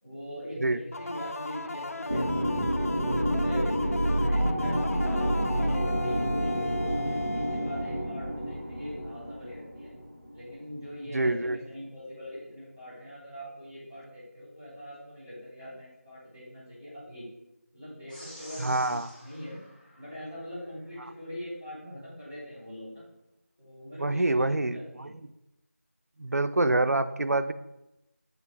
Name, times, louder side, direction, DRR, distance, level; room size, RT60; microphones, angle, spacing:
voice 1, 0.0-2.7 3.0-9.9 10.3-17.3 17.7-19.6 20.0-23.1 23.6-25.1, equal, 15° left, -10 dB, 1.4 m, -42 dB
sound 1, 0.9-8.5, left 2 dB, 70° left, 0.4 m, -37 dB
sound 2, 2.1-10.6, equal, 15° right, 0.5 m, -29 dB
voice 2, 11.1-11.6 18.6-19.1 21.0-21.1 24.0-25.1 26.2-27.5, right 2 dB, 80° right, 11 dB, 0.4 m, -26 dB
sound 3, 18.1-20.7, equal, 30° left, 1.7 m, -49 dB
8.2 x 3.7 x 3.6 m, 0.91 s
figure-of-eight pair, 175°, 8 cm